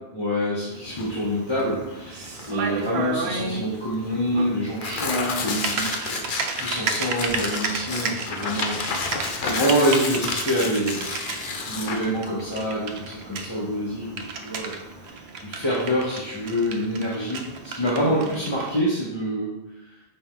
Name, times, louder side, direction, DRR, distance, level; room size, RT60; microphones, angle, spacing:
voice 1, 0.1-6.3 6.6-11.0 11.7-19.5, equal, 25° left, -7 dB, 1.1 m, -26 dB
Typing, 0.7-18.8, right 4 dB, 75° right, 0.9 m, -33 dB
Tearing, 0.9-15.1, left 4 dB, 55° left, 0.8 m, -32 dB
5.4 x 5.2 x 3.7 m, 0.99 s
omnidirectional pair, 1.1 m